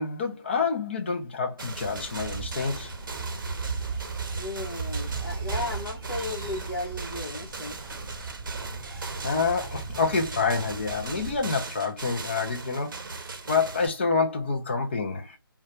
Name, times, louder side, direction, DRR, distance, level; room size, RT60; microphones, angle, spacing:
voice 1, 0.0-2.9 9.2-12.9 13.5-15.4, left 4 dB, 30° left, 0.4 m, -27 dB
sound 1, 1.6-13.9, right 3 dB, 55° right, 0.6 m, -39 dB
sound 2, 1.7-11.4, right 4 dB, 15° right, 0.7 m, -36 dB
voice 2, 4.3-7.8, left 2 dB, 80° left, 0.8 m, -35 dB
2.4 x 2.2 x 2.8 m
figure-of-eight pair, 160°, 12 cm